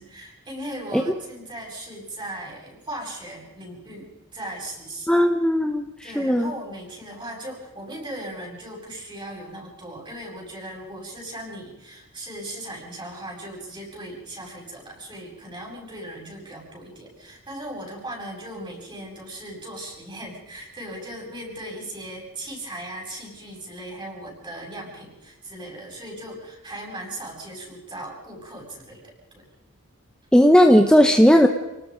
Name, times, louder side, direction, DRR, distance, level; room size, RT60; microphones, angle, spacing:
voice 1, 0.0-5.1 6.0-29.4, right 1 dB, 25° right, -1 dB, 7.9 m, -38 dB
voice 2, 5.1-5.9 6.2-6.5 30.3-31.5, equal, 5° left, 5 dB, 1.0 m, -15 dB
29.5 x 19.0 x 5.3 m, 1.1 s
head